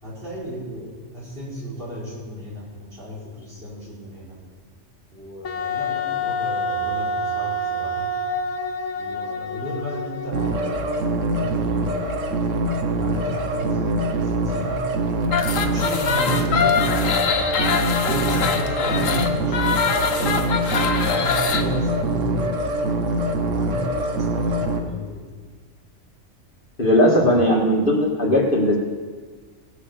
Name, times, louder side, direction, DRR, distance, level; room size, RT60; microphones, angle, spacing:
voice 1, 0.0-4.4 5.1-8.2 8.9-10.6 11.3-12.4 12.9-14.8 15.5-17.6 18.0-20.5 21.1-22.7 23.4-25.3, equal, 45° right, -7 dB, 5.7 m, -33 dB
Wind instrument woodwind instrument, 5.4-10.9, left 1 dB, 65° left, 1.1 m, -27 dB
sound 1, 10.3-24.8, right 1 dB, 75° right, 1.4 m, -24 dB
sound 2, 15.2-21.7, left 6 dB, 85° left, 1.4 m, -23 dB
voice 2, 26.8-28.8, left 1 dB, 40° left, -2 dB, 2.3 m, -18 dB
18.0 x 7.4 x 6.8 m, 1.5 s
omnidirectional pair, 1.3 m